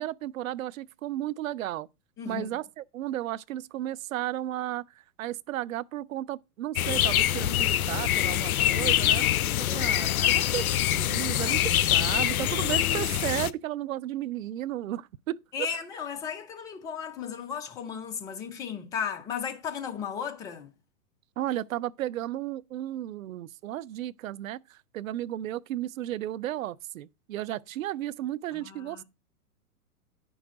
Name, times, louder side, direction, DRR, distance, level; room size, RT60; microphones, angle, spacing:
voice 1, 0.0-1.9 2.3-4.8 5.2-9.3 9.7-15.4 21.4-29.0, right 13 dB, 60° right, 0.6 m, -34 dB
voice 2, 2.2-2.5 9.6-10.4 15.5-20.7 28.5-29.0, left 7 dB, 10° left, 0.4 m, -35 dB
sound 1, 6.8-13.5, left 12 dB, 70° left, 0.6 m, -25 dB
9.0 x 6.2 x 3.6 m
hypercardioid pair, 115°, 45 cm